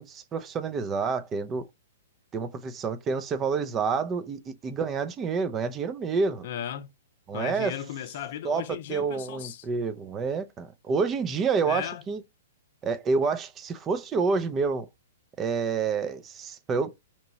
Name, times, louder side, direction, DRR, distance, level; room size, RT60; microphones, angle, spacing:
voice 1, 0.0-1.7 2.3-6.5 7.3-7.7 8.4-12.2 12.8-14.9 15.4-16.9, right 5 dB, 20° right, 0.5 m, -28 dB
voice 2, 6.4-6.9 7.3-9.7 11.6-12.0, left 10 dB, 55° left, 0.6 m, -36 dB
4.3 x 3.0 x 2.7 m
hypercardioid pair, 145°, 0 cm